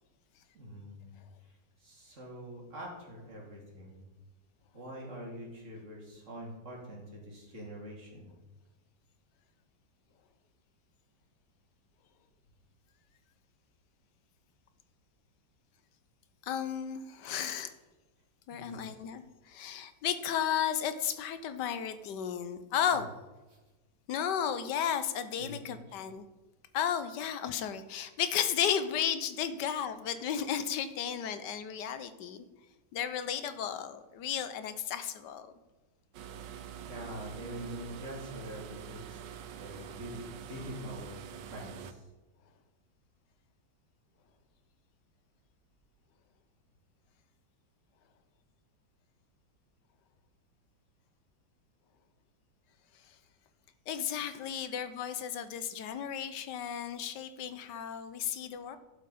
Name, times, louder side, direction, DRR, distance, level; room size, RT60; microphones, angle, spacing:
voice 1, 0.5-1.1 1.8-4.0 4.7-8.3 18.5-19.0 23.5-23.6 25.4-25.7 36.8-39.2 39.6-42.0, right 1 dB, 40° right, -2 dB, 3.0 m, -44 dB
voice 2, 16.4-17.7 18.5-23.1 24.1-26.3 26.7-32.4 32.9-35.5 53.9-58.8, left 9 dB, 70° left, 11 dB, 1.3 m, -34 dB
sound 1, 36.1-41.9, right 8 dB, 75° right, 1.4 m, -45 dB
11.5 x 7.9 x 4.1 m, 1.1 s
omnidirectional pair, 2.1 m